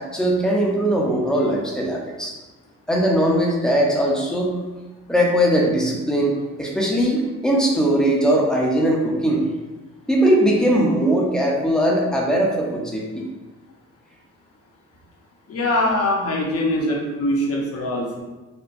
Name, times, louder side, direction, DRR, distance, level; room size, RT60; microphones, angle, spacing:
voice 1, 0.0-2.3 2.9-4.6 5.1-9.4 10.1-13.2, right 1 dB, ahead, -3 dB, 0.7 m, -20 dB
voice 2, 15.5-18.2, left 1 dB, 50° left, -2 dB, 0.9 m, -22 dB
4.4 x 2.2 x 2.6 m, 1.2 s
cardioid pair, 90°, 30 cm